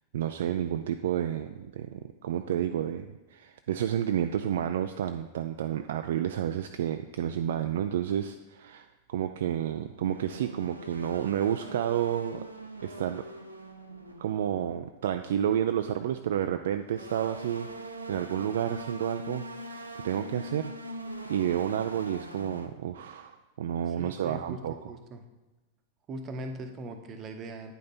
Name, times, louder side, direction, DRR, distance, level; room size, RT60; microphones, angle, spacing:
voice 1, 0.1-12.4 12.8-13.2 14.2-20.7 21.3-24.9, right 10 dB, 60° right, 7 dB, 0.3 m, -30 dB
sound 1, 9.9-15.0 16.8-22.7, equal, 85° right, 0.7 m, -42 dB
voice 2, 23.9-25.2 26.1-27.7, right 2 dB, 30° right, 6 dB, 0.9 m, -40 dB
9.2 x 5.3 x 4.3 m, 1.1 s
figure-of-eight pair, 90°, 0 cm